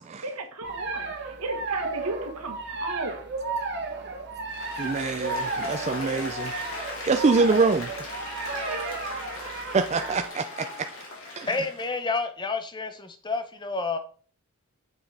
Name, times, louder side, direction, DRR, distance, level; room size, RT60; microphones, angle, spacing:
voice 1, 0.2-3.2 8.5-9.0, right 2 dB, 85° right, 1.4 m, -35 dB
sound 1, 0.6-10.3, right 3 dB, 50° right, 1.2 m, -33 dB
Applause, 4.5-12.0, left 2 dB, 60° left, 2.6 m, -38 dB
voice 2, 4.7-6.5 7.0-7.9 9.7-10.9 11.4-11.5, right 4 dB, 30° right, 0.3 m, -25 dB
voice 3, 11.5-14.0, left 3 dB, 20° left, 0.7 m, -29 dB
7.3 x 6.2 x 3.4 m
head